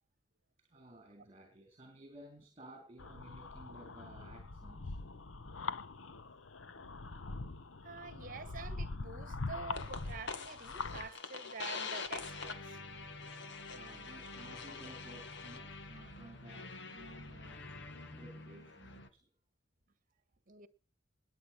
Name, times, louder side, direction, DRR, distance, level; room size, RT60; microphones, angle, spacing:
voice 1, 0.6-5.0 13.6-17.7 18.1-19.3, right 1 dB, 30° right, 3.7 m, -55 dB
sound 1, 3.0-11.1, left 3 dB, 85° left, 1.0 m, -43 dB
voice 2, 7.8-12.8 20.5-20.7, right 4 dB, 45° right, 1.6 m, -47 dB
sound 2, 9.7-19.1, left 4 dB, 65° left, 1.8 m, -45 dB
20.5 x 8.3 x 5.6 m
head